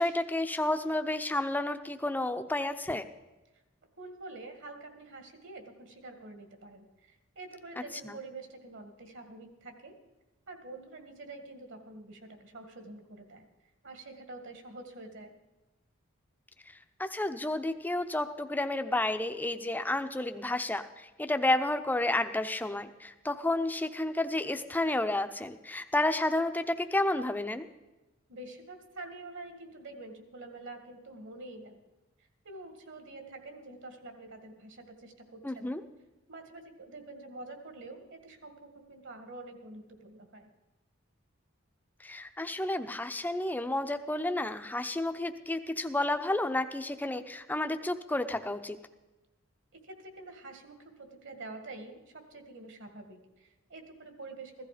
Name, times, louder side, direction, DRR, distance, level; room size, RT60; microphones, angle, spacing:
voice 1, 0.0-3.0 8.0-8.1 17.0-27.7 35.4-35.8 42.0-48.8, left 2 dB, 10° left, 9 dB, 0.6 m, -31 dB
voice 2, 4.0-9.9 10.5-13.5 13.8-15.3 28.3-31.8 32.4-35.7 36.3-40.5 49.7-54.7, right 2 dB, 60° right, 6 dB, 1.9 m, -47 dB
15.5 x 13.5 x 5.0 m, 1.1 s
head